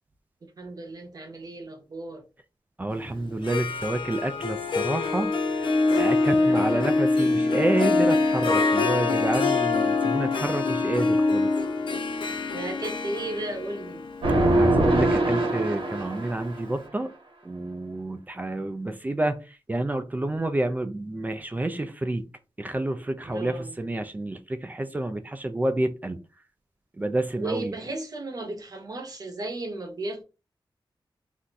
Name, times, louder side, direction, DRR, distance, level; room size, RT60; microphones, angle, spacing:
voice 1, 0.6-2.2 6.2-6.9 12.5-14.0 23.3-23.8 27.3-30.2, right 2 dB, 45° right, 0.8 m, -35 dB
voice 2, 2.8-5.6 5.9-11.5 14.4-17.1 17.4-19.4 19.7-22.3 22.6-26.2 27.0-27.7, right 2 dB, 20° right, 0.3 m, -29 dB
Harp, 3.3-16.2, left 3 dB, 70° left, 0.5 m, -25 dB
sound 1, 14.2-16.6, right 1 dB, 85° right, 0.9 m, -22 dB
2.6 x 2.3 x 3.9 m
wide cardioid pair, 125°, 9 cm